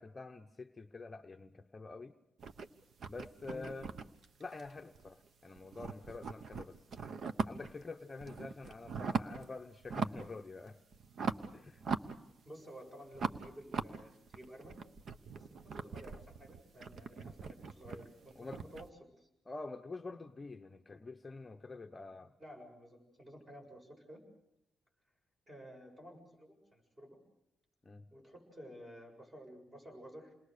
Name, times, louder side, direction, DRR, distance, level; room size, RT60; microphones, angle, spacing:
voice 1, 0.0-2.1 3.1-3.9 4.4-6.8 7.5-10.8 11.5-11.9 18.4-18.6 19.5-22.3 27.8-28.1, left 3 dB, 20° left, 5 dB, 0.9 m, -47 dB
sound 1, 2.4-5.3 5.6-7.8 8.2-9.5 9.8-10.4 10.7-12.7 13.1-18.9, right 5 dB, 55° right, 1.1 m, -40 dB
voice 2, 12.4-14.8 15.3-18.9 19.2-19.3 22.4-24.2 25.5-27.2 28.1-30.3, equal, 25° right, 2 dB, 7.5 m, -53 dB
28.5 x 21.0 x 6.7 m, 0.86 s
cardioid pair, 140°, 0 cm